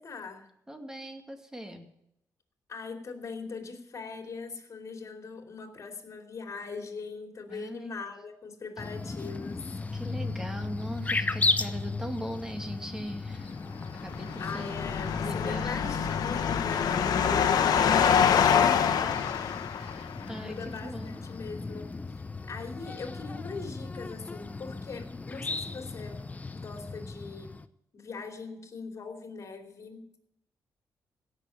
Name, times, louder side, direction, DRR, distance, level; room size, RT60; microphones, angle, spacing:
voice 1, 0.0-0.5 2.7-9.6 14.4-18.9 19.4-19.5 20.4-21.9 22.5-26.2 26.5-27.6 27.9-30.2, left 4 dB, 50° left, 4 dB, 2.8 m, -41 dB
voice 2, 0.7-1.9 7.5-7.9 9.9-13.6 13.9-16.1 16.3-16.5 16.8-18.0 19.0-19.1 19.7-21.2, equal, 10° right, 5 dB, 2.2 m, -40 dB
sound 1, 8.8-27.7, left 3 dB, 20° left, 0.7 m, -36 dB
sound 2, 13.9-20.2, left 8 dB, 80° left, 1.1 m, -25 dB
16.5 x 6.6 x 9.1 m, 0.76 s
cardioid pair, 100°, 7 cm